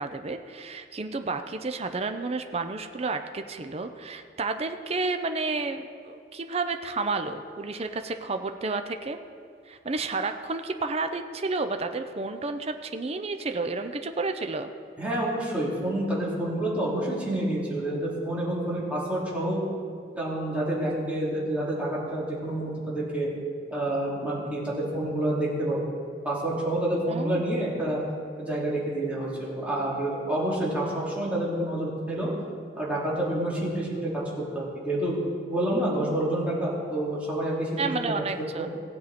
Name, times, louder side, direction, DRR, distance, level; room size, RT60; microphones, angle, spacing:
voice 1, 0.0-9.2 9.7-14.7 27.1-27.4 37.8-38.8, right 3 dB, 35° right, 7 dB, 0.6 m, -31 dB
voice 2, 15.0-19.6 20.1-23.3 23.7-25.8 26.2-28.0 28.4-32.3 32.8-34.1 34.4-35.1 35.5-38.2 38.6-38.7, right 1 dB, 10° right, -7 dB, 3.1 m, -28 dB
17.5 x 8.0 x 4.3 m, 2.2 s
head